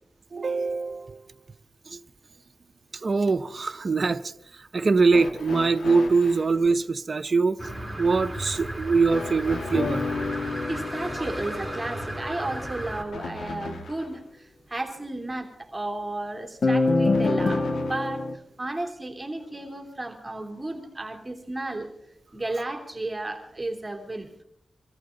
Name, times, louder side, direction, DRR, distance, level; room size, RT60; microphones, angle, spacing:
voice 1, 0.3-1.2 1.9-2.0 3.0-4.2 4.6-7.6 8.0-10.0, right 4 dB, 50° right, 0.7 m, -23 dB
sound 1, 5.1-6.5 9.1-14.2 17.1-18.2 19.4-19.5 20.6-20.7, left 3 dB, 85° left, 1.7 m, -38 dB
sound 2, 7.6-13.0, right 1 dB, 5° right, 5.6 m, -35 dB
sound 3, 9.7-12.3 16.6-18.3, left 3 dB, 60° left, 1.2 m, -26 dB
voice 2, 10.4-21.9 22.3-24.3, right 2 dB, 20° right, 3.0 m, -33 dB
24.5 x 14.0 x 3.9 m
cardioid pair, 60°, 0 cm